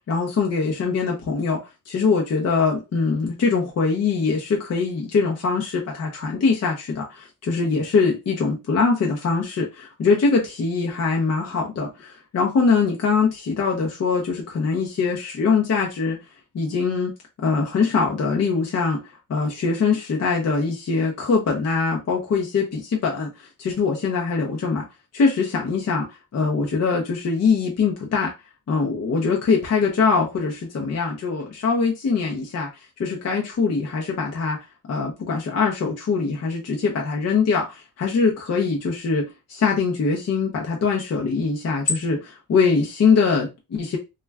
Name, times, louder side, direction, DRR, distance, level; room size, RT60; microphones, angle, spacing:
voice 1, 0.1-1.6 1.9-16.2 16.5-17.1 17.4-19.0 19.3-24.8 25.1-28.3 28.7-32.7 33.0-34.6 34.9-44.0, left 4 dB, 45° left, 0.6 m, -22 dB
2.3 x 2.2 x 3.3 m
wide cardioid pair, 155°, 35 cm